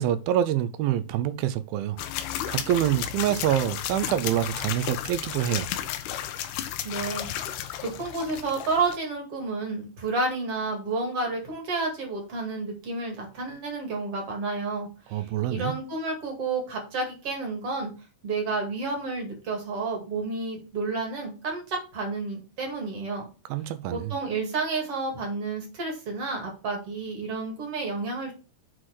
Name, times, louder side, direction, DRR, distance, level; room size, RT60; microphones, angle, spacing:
voice 1, 0.0-2.0 2.5-5.7 15.1-15.7 23.5-24.1, right 11 dB, 80° right, 2.3 m, -26 dB
sound 1, 2.0-9.0, left 11 dB, 85° left, 2.8 m, -33 dB
voice 2, 6.8-7.3 7.8-17.9 18.2-23.3 23.9-28.3, right 3 dB, 45° right, 2.6 m, -30 dB
7.7 x 4.2 x 4.6 m
omnidirectional pair, 4.6 m